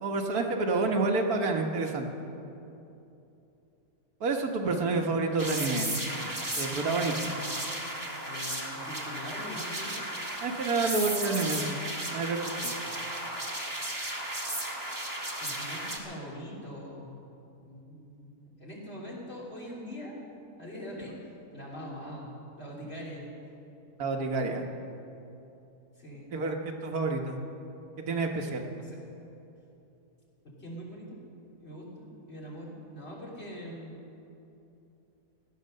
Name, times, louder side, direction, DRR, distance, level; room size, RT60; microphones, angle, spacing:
voice 1, 0.0-2.1 4.2-5.9 6.6-7.3 10.4-11.8 12.1-12.7 24.0-24.7 26.3-27.4 28.0-28.6, right 3 dB, 75° right, 2 dB, 1.7 m, -29 dB
sound 1, 5.4-16.0, right 1 dB, 15° right, 1.5 m, -35 dB
voice 2, 8.2-10.0 15.4-17.1 17.6-20.2 20.6-21.2 21.5-23.3 26.0-26.3 28.8-29.0 30.4-31.2 31.6-34.0, equal, 45° left, -5 dB, 3.5 m, -43 dB
17.0 x 10.5 x 6.6 m, 2.8 s
omnidirectional pair, 1.6 m